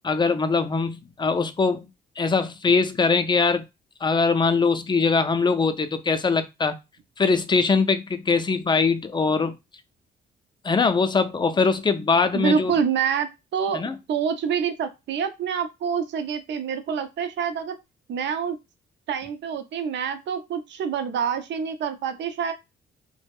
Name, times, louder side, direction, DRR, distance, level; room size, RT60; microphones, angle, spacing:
voice 1, 0.0-1.9 2.2-3.6 4.0-6.7 7.2-9.6 10.6-12.7 13.7-13.9, left 4 dB, 25° left, 0.4 m, -22 dB
voice 2, 12.3-17.8 18.1-18.6 19.1-22.5, right 7 dB, 65° right, 0.6 m, -27 dB
2.4 x 2.1 x 3.4 m
cardioid pair, 90°, 20 cm